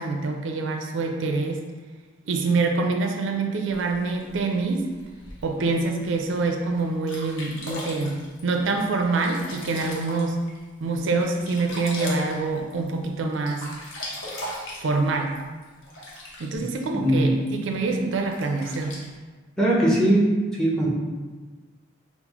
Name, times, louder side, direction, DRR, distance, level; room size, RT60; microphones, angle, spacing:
voice 1, 0.0-1.6 2.3-4.9 5.4-10.4 10.8-13.7 14.8-15.3 16.4-19.0, right 3 dB, 70° right, 3 dB, 0.4 m, -25 dB
Sink (filling or washing), 3.7-5.7 6.3-6.4 6.8-6.9 7.1-10.6 10.9-13.1 13.3-16.7 17.5-17.6 18.3-19.1, left 1 dB, 75° left, 0.8 m, -38 dB
voice 2, 16.9-17.3 19.6-20.3 20.6-20.9, right 1 dB, 5° left, -5 dB, 0.7 m, -20 dB
5.7 x 2.0 x 2.9 m, 1.4 s
head